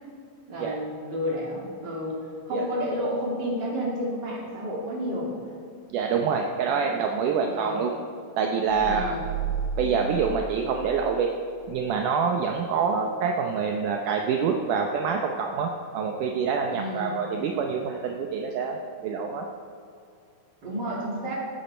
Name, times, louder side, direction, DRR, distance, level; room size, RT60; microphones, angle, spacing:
voice 1, 0.5-2.2 2.4-5.3 7.5-7.8 8.8-9.3 16.7-17.1 20.6-21.3, equal, 30° right, -4 dB, 3.2 m, -31 dB
voice 2, 5.9-7.9 8.4-9.2 9.8-11.4 11.7-19.5, right 6 dB, 75° right, 2 dB, 2.2 m, -26 dB
sound 1, 8.7-11.3 11.6-11.7, right 6 dB, 60° left, 4.9 m, -33 dB
17.5 x 9.0 x 4.4 m, 2.4 s
omnidirectional pair, 3.9 m